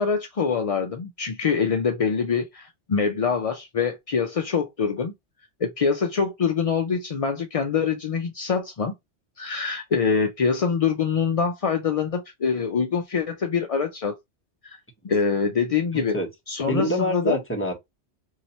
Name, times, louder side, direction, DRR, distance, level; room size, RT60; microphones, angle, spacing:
voice 1, 0.0-5.1 5.6-8.9 9.4-14.1 14.6-14.8 15.0-16.2 16.5-17.4, left 6 dB, 55° left, 0.4 m, -24 dB
voice 2, 15.9-16.3 16.7-17.7, equal, 10° left, 1.0 m, -25 dB
2.9 x 2.7 x 4.1 m
omnidirectional pair, 1.2 m